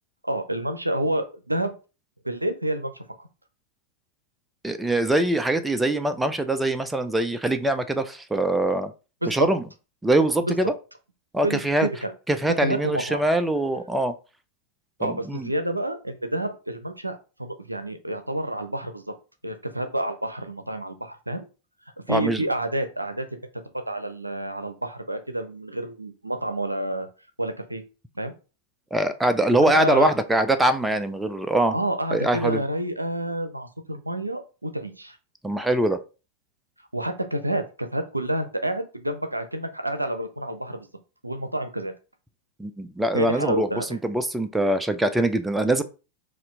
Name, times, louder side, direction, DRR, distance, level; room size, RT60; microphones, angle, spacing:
voice 1, 0.2-1.7 2.2-2.9 3.2-3.3 9.2-9.5 10.4-10.6 11.4-12.1 12.5-13.2 15.0-19.0 19.4-21.5 22.1-23.4 23.9-27.1 27.4-27.8 28.2-28.3 29.5-30.1 31.7-35.2 36.9-40.9 41.2-41.9 43.1-44.0, right 1 dB, 85° right, 8 dB, 0.5 m, -29 dB
voice 2, 4.6-8.9 9.3-9.6 10.0-10.7 11.3-11.9 12.3-14.1 15.0-15.5 22.1-22.4 28.9-31.7 32.1-32.6 35.4-36.0 42.6-45.8, right 1 dB, 5° right, 9 dB, 0.4 m, -23 dB
4.2 x 2.5 x 3.8 m, 0.33 s
figure-of-eight pair, 90°, 0 cm